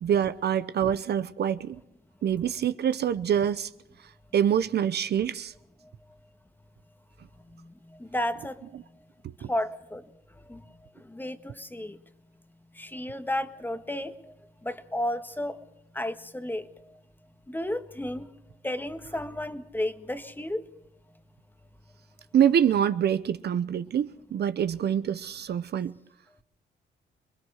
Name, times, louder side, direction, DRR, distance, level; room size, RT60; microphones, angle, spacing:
voice 1, 0.0-1.8 2.2-3.7 4.3-5.5 9.2-9.5 22.3-26.0, right 9 dB, 55° right, 0.8 m, -25 dB
voice 2, 7.5-8.6 9.5-10.0 10.5-10.6 11.0-12.0 12.7-14.3 14.6-15.6 15.9-16.7 17.5-18.3 18.6-20.6, left 1 dB, 10° left, 1.6 m, -32 dB
27.0 x 20.5 x 4.9 m
cardioid pair, 90°, 20 cm